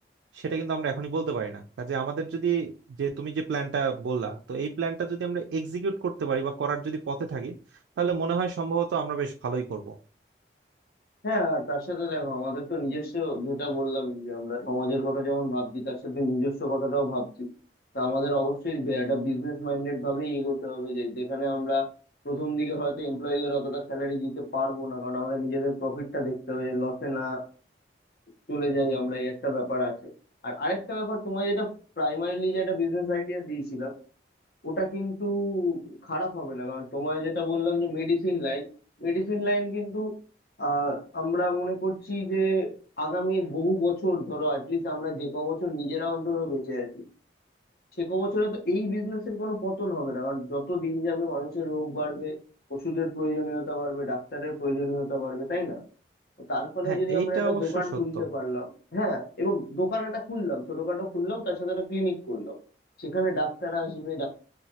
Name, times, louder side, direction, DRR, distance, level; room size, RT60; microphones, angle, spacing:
voice 1, 0.3-2.7 3.0-7.5 8.0-9.9 56.8-57.8 58.1-58.2, right 5 dB, 90° right, 4 dB, 0.3 m, -29 dB
voice 2, 11.2-17.5 17.9-21.9 22.2-27.4 28.5-30.0 30.4-31.7 32.0-33.9 34.6-38.7 39.0-40.1 40.6-42.7 43.0-47.0 48.0-52.3 52.7-55.8 56.5-62.6 63.0-64.3, equal, 60° left, 1 dB, 0.9 m, -29 dB
3.0 x 2.3 x 2.7 m, 0.38 s
head